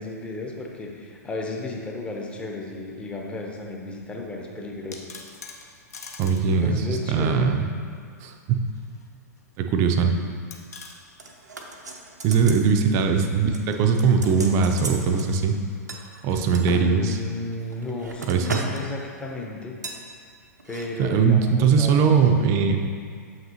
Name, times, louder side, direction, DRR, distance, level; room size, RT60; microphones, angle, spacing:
voice 1, 0.0-5.2 6.4-7.5 12.8-13.3 16.6-19.8 20.7-22.2, left 2 dB, 10° left, 0 dB, 0.7 m, -34 dB
sound 1, 4.7-6.5 6.8-6.9 8.3-9.1 9.4-9.5 10.5-11.0 12.9-15.8, left 4 dB, 65° left, 0.7 m, -46 dB
voice 2, 6.2-7.6 8.2-8.6 9.6-10.1 12.2-15.5 16.2-17.2 18.3-18.6 21.0-22.8, right 5 dB, 30° right, 5 dB, 0.5 m, -20 dB
sound 2, 11.2-12.7 13.0-13.2 13.5-15.3 15.9-16.8 17.4-18.8 19.1-19.3 19.8-20.0 20.6-20.9 21.1-21.2, right 3 dB, 80° right, 0.7 m, -36 dB
7.2 x 5.8 x 2.9 m, 2.1 s
figure-of-eight pair, 105°, 9 cm